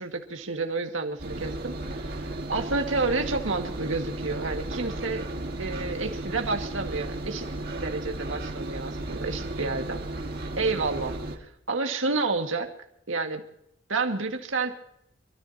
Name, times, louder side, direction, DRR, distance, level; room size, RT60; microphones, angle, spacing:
voice 1, 0.0-5.3 5.6-7.5 7.8-10.1 10.6-12.7 13.1-13.4 13.9-14.7, right 3 dB, 85° right, 4 dB, 2.0 m, -30 dB
Engine, 1.2-11.4, right 1 dB, 50° right, 1.9 m, -34 dB
28.0 x 14.0 x 2.9 m, 0.77 s
head